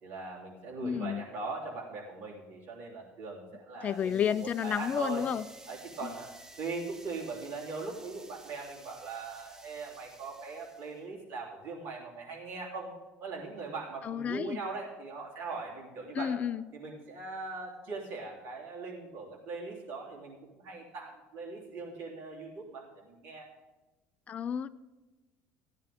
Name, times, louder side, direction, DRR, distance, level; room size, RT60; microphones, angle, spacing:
voice 1, 0.0-5.2 5.7-6.3 6.6-12.9 13.2-16.3 16.7-23.5, right 3 dB, 60° right, -2 dB, 3.4 m, -40 dB
voice 2, 0.8-1.2 3.8-5.4 6.0-6.1 14.0-14.6 16.1-16.6 24.3-24.7, left 8 dB, 35° left, 16 dB, 0.3 m, -31 dB
sound 1, 3.8-11.0, right 2 dB, 10° right, 0.8 m, -54 dB
16.0 x 9.8 x 3.6 m, 1.2 s
cardioid pair, 135°, 4 cm